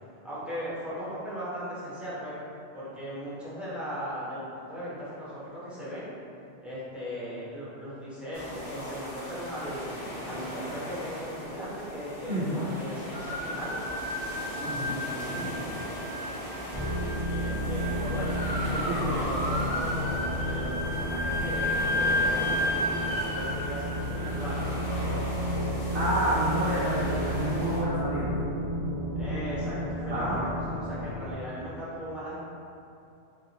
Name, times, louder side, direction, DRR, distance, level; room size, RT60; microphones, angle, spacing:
voice 1, 0.2-2.4 2.7-6.1 6.6-10.0 10.2-13.8 14.6-15.8 17.3-24.8 29.2-32.3, equal, ahead, -11 dB, 0.8 m, -38 dB
sound 1, 8.3-27.8, equal, 40° left, 0.7 m, -39 dB
voice 2, 12.3-12.6 14.6-14.9 15.3-15.5 18.9-19.1 25.9-28.3 30.1-30.4, right 1 dB, 75° right, -10 dB, 0.9 m, -29 dB
sound 2, 13.1-26.2, left 1 dB, 85° left, 1.6 m, -33 dB
sound 3, 16.7-31.3, equal, 60° left, 1.6 m, -32 dB
3.9 x 2.4 x 2.9 m, 2.7 s
omnidirectional pair, 1.1 m